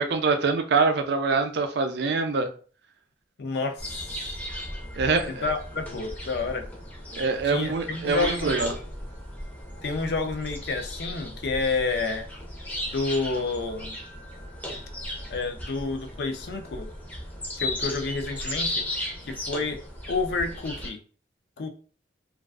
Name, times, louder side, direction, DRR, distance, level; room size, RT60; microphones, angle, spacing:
voice 1, 0.0-2.5 5.0-5.4 7.2-8.7, right 4 dB, 70° right, 7 dB, 0.4 m, -24 dB
voice 2, 3.4-3.9 5.3-6.7 7.4-8.6 9.8-12.3 12.9-14.0 15.3-16.9 17.6-18.8 19.2-19.8 20.1-21.0 21.6-21.7, left 3 dB, 65° left, 6 dB, 0.4 m, -29 dB
sound 1, 3.8-20.9, left 1 dB, 10° left, 0.4 m, -36 dB
2.3 x 2.3 x 2.3 m, 0.41 s
head